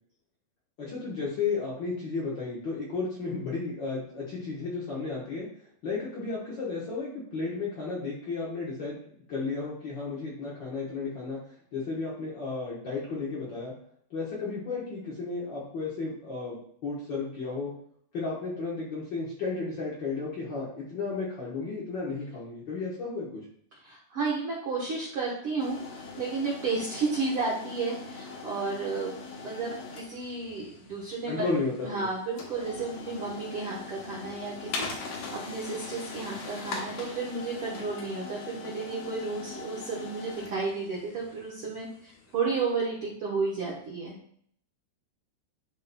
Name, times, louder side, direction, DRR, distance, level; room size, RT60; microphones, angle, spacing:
voice 1, 0.8-5.5 5.8-9.0 9.3-11.4 11.7-13.7 14.1-17.7 18.1-23.4 31.3-32.1, left 4 dB, 85° left, -6 dB, 1.0 m, -33 dB
voice 2, 23.8-31.5 31.8-44.2, right 4 dB, 70° right, -4 dB, 1.3 m, -32 dB
sound 1, 25.6-42.5, left 4 dB, 65° left, 2.4 m, -41 dB
11.5 x 4.1 x 2.2 m, 0.64 s
omnidirectional pair, 4.2 m